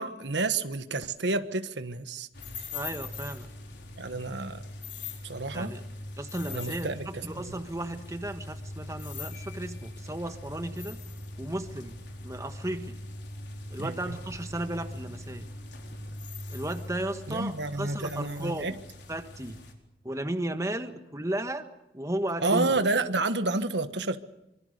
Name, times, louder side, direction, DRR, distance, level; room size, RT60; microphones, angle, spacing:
voice 1, 0.0-2.3 4.0-4.6 5.2-5.7 6.5-7.6 13.8-14.2 17.3-18.7 22.4-24.2, right 3 dB, 85° right, 1.5 m, -30 dB
sound 1, 2.3-19.7, left 2 dB, 80° left, 4.4 m, -41 dB
voice 2, 2.7-3.5 5.5-5.8 6.2-11.0 11.4-13.0 13.7-15.5 16.5-18.8 19.1-19.6 20.0-21.7 21.9-22.8, right 1 dB, 15° right, 1.5 m, -34 dB
25.5 x 24.5 x 6.8 m
head